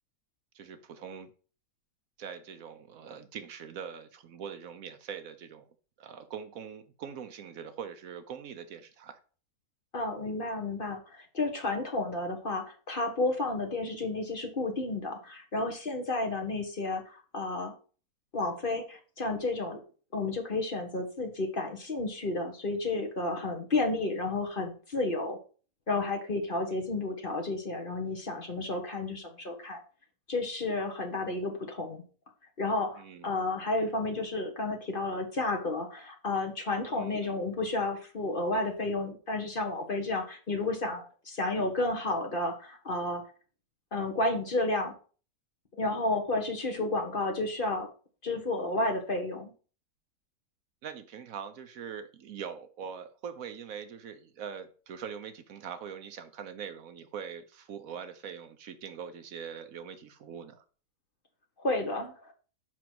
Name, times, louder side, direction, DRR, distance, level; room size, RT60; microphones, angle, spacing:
voice 1, 0.5-1.3 2.2-5.7 6.0-9.2 33.0-33.3 36.9-37.3 50.8-60.6, right 7 dB, 70° right, 1.1 m, -42 dB
voice 2, 9.9-17.7 18.3-19.8 20.1-25.4 25.9-29.8 30.3-32.0 32.6-43.2 43.9-44.9 45.8-47.9 48.2-49.5 61.6-62.3, left 2 dB, 40° left, 1.1 m, -31 dB
6.0 x 4.6 x 5.9 m
omnidirectional pair, 1.6 m